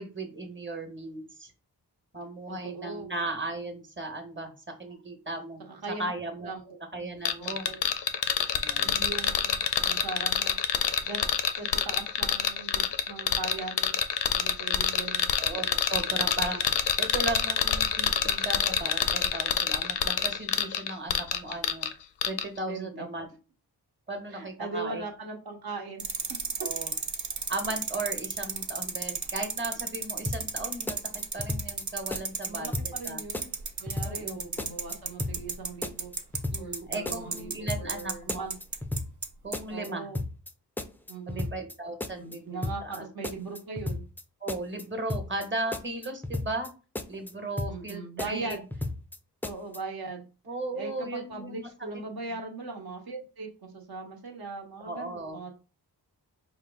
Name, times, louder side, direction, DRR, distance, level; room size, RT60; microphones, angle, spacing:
voice 1, 0.0-1.5 2.1-4.5 4.8-5.6 6.0-6.5 6.9-7.7 8.5-8.9 15.4-21.9 22.2-23.3 24.1-25.1 26.6-26.9 27.5-31.0 31.3-33.2 34.0-34.5 36.5-38.5 39.4-40.1 41.3-43.1 44.4-46.7 47.1-48.6 50.5-51.7 54.8-55.4, right 2 dB, 30° right, 5 dB, 1.1 m, -36 dB
voice 2, 2.5-3.1 5.7-6.1 6.4-6.8 7.4-7.8 8.8-10.6 10.8-14.0 14.3-15.3 22.6-23.1 24.3-26.4 32.5-33.5 33.8-36.1 36.6-38.5 39.7-40.2 41.1-41.5 42.2-44.0 47.7-48.6 49.4-50.2 50.8-55.5, right 3 dB, 60° right, 1 dB, 1.0 m, -39 dB
sound 1, 7.2-21.9 22.2-22.4, left 8 dB, 85° left, 0.5 m, -26 dB
sound 2, 26.0-39.3 39.5-39.6, right 5 dB, 45° right, 0.7 m, -32 dB
sound 3, 30.3-30.6 30.9-31.8 32.1-32.5 32.7-33.1 33.3-34.3 34.6-34.9 35.2-35.6 35.8-36.8 37.1-37.4 37.7-38.0 38.3-39.3 39.5-39.9 40.1-40.5 40.8-41.7 42.0-42.4 42.6-43.0 43.2-44.2 44.5-44.8 45.1-45.5 45.7-46.7 47.0-47.3 47.6-47.9 48.2-49.2 49.4-49.8, left 2 dB, 5° left, 0.3 m, -34 dB
4.5 x 2.0 x 3.5 m, 0.33 s
cardioid pair, 55°, 41 cm